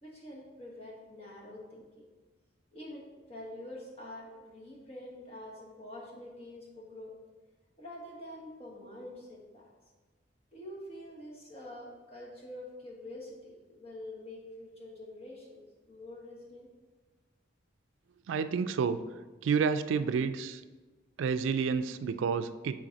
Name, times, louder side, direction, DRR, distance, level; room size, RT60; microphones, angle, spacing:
voice 1, 0.0-2.1 2.7-7.1 7.8-9.6 10.5-15.6 15.9-16.7, left 1 dB, 30° left, -3 dB, 1.4 m, -46 dB
voice 2, 18.3-19.0 19.4-20.6 21.2-22.8, right 6 dB, 80° right, 12 dB, 0.3 m, -29 dB
9.0 x 3.9 x 4.0 m, 1.3 s
head